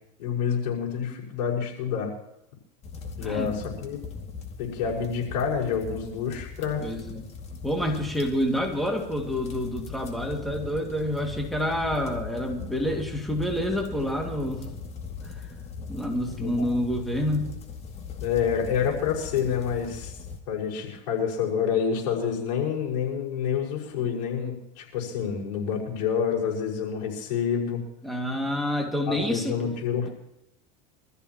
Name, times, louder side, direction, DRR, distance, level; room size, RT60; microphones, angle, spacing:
voice 1, 0.2-2.1 3.2-4.0 4.6-6.8 16.4-16.7 18.2-20.1 20.5-27.8 29.1-30.1, left 7 dB, 85° left, -3 dB, 5.7 m, -28 dB
sound 1, 2.8-20.4, left 5 dB, 30° left, 2.3 m, -40 dB
voice 2, 3.2-3.7 6.8-7.3 7.6-14.7 15.2-15.5 15.9-17.5 28.0-29.6, equal, ahead, 1 dB, 2.3 m, -28 dB
25.0 x 14.0 x 3.0 m, 0.83 s
supercardioid pair, 115°, 21 cm